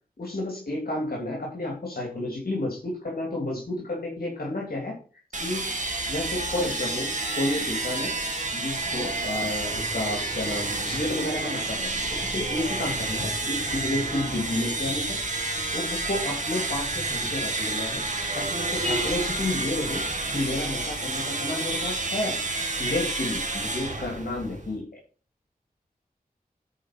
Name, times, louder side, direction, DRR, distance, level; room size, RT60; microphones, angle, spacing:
voice 1, 0.2-4.9 5.4-5.7 6.1-7.1 7.3-8.1 8.5-15.2 15.7-18.0 18.3-20.0 20.3-22.4 22.8-24.8, left 1 dB, 75° left, -2 dB, 3.1 m, -31 dB
sound 1, 5.3-24.8, right 2 dB, 55° right, 2.0 m, -29 dB
10.0 x 4.9 x 6.0 m, 0.38 s
wide cardioid pair, 45°, 15 cm